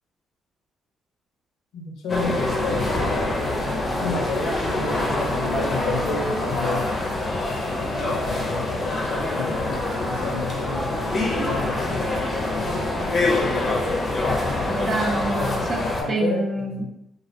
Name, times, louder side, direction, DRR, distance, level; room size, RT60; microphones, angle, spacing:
voice 1, 1.7-7.0 8.0-13.8 15.3-16.9, left 3 dB, 90° left, 1 dB, 0.5 m, -31 dB
sound 1, 2.1-16.0, left 2 dB, 40° left, 0.5 m, -25 dB
voice 2, 14.7-15.8 16.1-16.9, right 2 dB, 40° right, 1 dB, 0.5 m, -26 dB
2.3 x 2.1 x 2.7 m, 0.83 s
cardioid pair, 90°, 0 cm